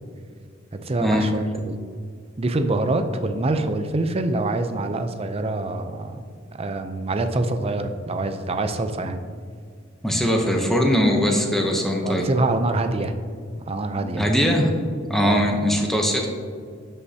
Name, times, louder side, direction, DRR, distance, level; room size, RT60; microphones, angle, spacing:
voice 1, 0.8-1.8 2.4-6.2 6.5-9.2 12.0-13.1 13.7-14.3 15.2-15.5, right 2 dB, 30° right, 8 dB, 0.5 m, -25 dB
voice 2, 10.0-12.3 14.0-14.7 15.1-16.3, equal, ahead, 0 dB, 0.8 m, -21 dB
12.5 x 5.5 x 2.8 m, 2.1 s
head